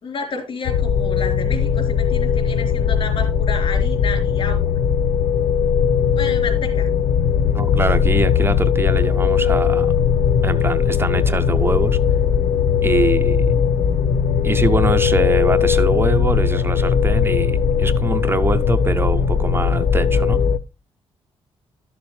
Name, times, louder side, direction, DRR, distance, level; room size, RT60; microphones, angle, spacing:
voice 1, 0.0-4.7 6.1-6.9, left 4 dB, 55° left, 3.6 m, -30 dB
sound 1, 0.6-20.6, left 7 dB, 75° left, 0.6 m, -18 dB
voice 2, 7.5-9.9 10.4-12.0 12.8-13.5 14.4-20.4, right 3 dB, 20° right, 0.5 m, -23 dB
12.5 x 7.0 x 3.2 m
cardioid pair, 115°, 11 cm